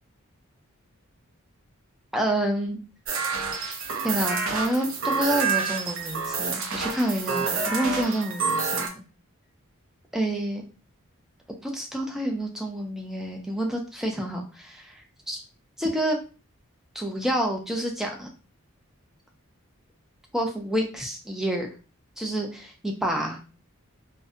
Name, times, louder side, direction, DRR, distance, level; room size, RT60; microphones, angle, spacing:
voice 1, 2.1-2.8 3.5-3.8 4.0-9.0 10.1-10.6 11.5-15.4 15.8-16.2 16.9-18.3 20.3-21.7 22.2-23.4, right 1 dB, ahead, 1 dB, 0.3 m, -28 dB
sound 1, 3.1-8.9, right 5 dB, 65° right, 0.5 m, -28 dB
2.6 x 2.1 x 2.4 m, 0.35 s
head